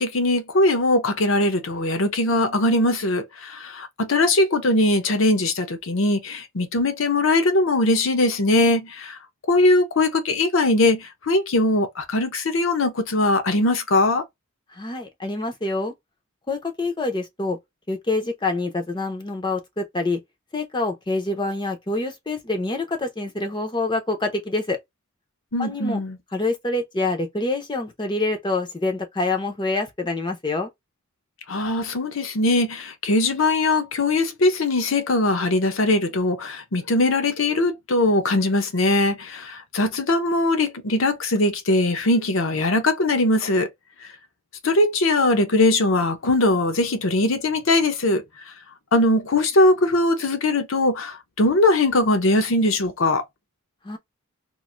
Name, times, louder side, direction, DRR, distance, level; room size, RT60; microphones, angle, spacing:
voice 1, 0.0-9.2 9.5-14.2 25.5-26.2 31.5-43.7 44.6-48.2 48.9-53.2, left 2 dB, 60° left, 0.7 m, -21 dB
voice 2, 14.7-15.9 16.5-17.6 17.9-20.2 20.5-24.8 25.6-26.0 26.3-30.7 53.8-54.0, left 2 dB, 20° left, 0.6 m, -26 dB
3.0 x 2.5 x 2.5 m
head